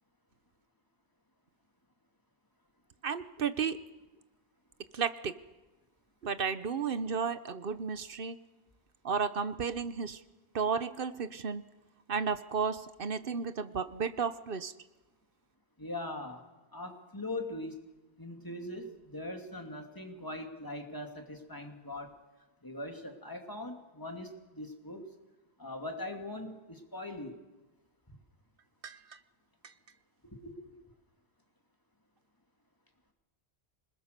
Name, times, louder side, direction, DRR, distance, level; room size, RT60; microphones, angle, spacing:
voice 1, 3.0-3.8 4.9-5.4 6.2-8.4 9.0-10.2 10.5-11.6 12.1-14.7 28.8-29.0, right 6 dB, 60° right, 14 dB, 1.1 m, -33 dB
voice 2, 15.8-16.5 16.7-17.8 18.2-22.1 22.6-25.0 25.6-27.4 28.1-28.2 30.2-30.8, left 1 dB, 20° left, 4 dB, 2.6 m, -41 dB
26.5 x 20.5 x 6.8 m, 1.1 s
omnidirectional pair, 1.0 m